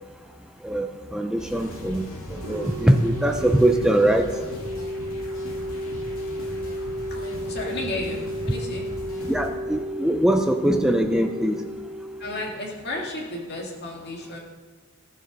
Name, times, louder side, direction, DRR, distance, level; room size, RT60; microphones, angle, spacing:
voice 1, 0.6-2.1 2.5-4.2 9.3-11.6, right 1 dB, 5° right, 5 dB, 0.5 m, -21 dB
sound 1, 1.4-9.5, equal, 65° left, 2.9 m, -39 dB
sound 2, 2.4-13.1, equal, 90° right, 0.9 m, -33 dB
voice 2, 7.1-8.9 9.2-9.3 12.2-14.4, left 2 dB, 50° left, -2 dB, 2.3 m, -33 dB
15.5 x 7.5 x 5.3 m, 1.4 s
head